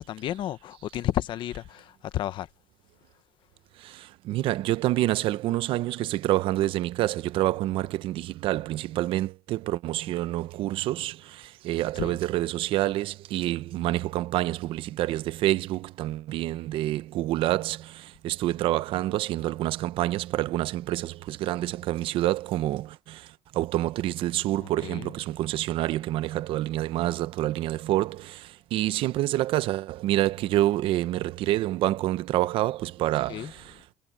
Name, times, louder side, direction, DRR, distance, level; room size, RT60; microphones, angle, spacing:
voice 1, 0.0-2.5 12.0-12.2 24.8-25.1 33.3-33.5, left 12 dB, 55° left, 1.0 m, -31 dB
voice 2, 3.8-33.9, right 15 dB, 65° right, 0.7 m, -27 dB
cardioid pair, 155°, 10 cm